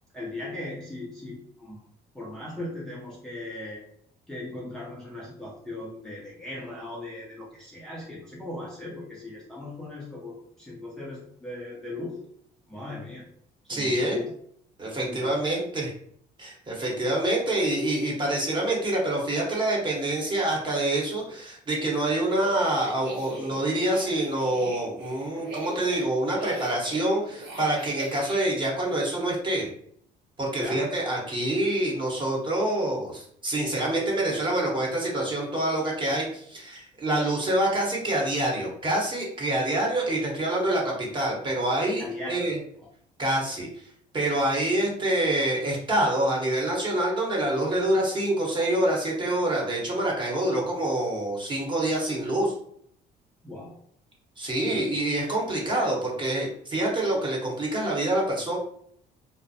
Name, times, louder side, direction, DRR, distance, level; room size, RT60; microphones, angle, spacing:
voice 1, 0.1-1.8 2.1-3.8 4.3-12.2 12.7-13.3 13.6-14.3 15.0-15.5 30.6-30.9 42.0-42.6 53.4-53.8 54.6-55.0, left 2 dB, 5° left, -6 dB, 0.5 m, -38 dB
voice 2, 13.7-14.2 14.8-15.9 16.4-29.7 30.4-42.6 43.2-43.9 44.1-52.5 54.4-58.6, right 1 dB, 30° right, -3 dB, 0.9 m, -26 dB
sound 1, 22.3-28.5, right 1 dB, 85° right, 0.7 m, -41 dB
2.4 x 2.0 x 2.6 m, 0.65 s
cardioid pair, 110°, 17 cm